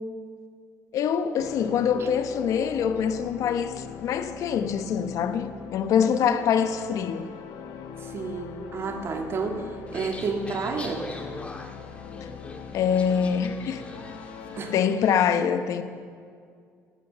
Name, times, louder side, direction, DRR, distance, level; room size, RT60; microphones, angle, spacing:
voice 1, 0.9-7.3 12.7-13.9 14.7-15.8, left 7 dB, 65° left, 0.9 m, -24 dB
sound 1, 1.4-14.9, left 7 dB, 90° left, 1.2 m, -41 dB
voice 2, 8.0-11.1 14.6-14.7, right 4 dB, 45° right, 1.9 m, -31 dB
sound 2, 9.9-15.2, left 2 dB, 20° left, 1.7 m, -42 dB
14.0 x 13.0 x 6.7 m
cardioid pair, 130°, 6 cm